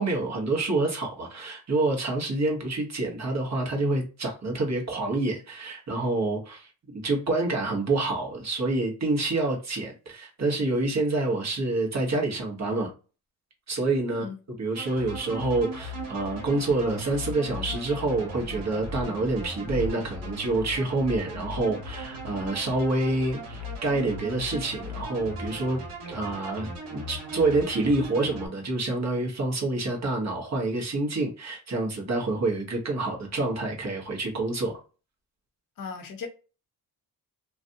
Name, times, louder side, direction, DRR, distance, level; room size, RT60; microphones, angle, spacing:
voice 1, 0.0-12.9 13.7-25.8 26.1-34.7, right 2 dB, 40° right, 1.5 m, -27 dB
sound 1, 14.8-28.5, equal, 80° right, 1.7 m, -37 dB
voice 2, 35.8-36.3, left 5 dB, 50° left, 1.0 m, -37 dB
3.1 x 2.6 x 2.7 m
cardioid pair, 75°, 41 cm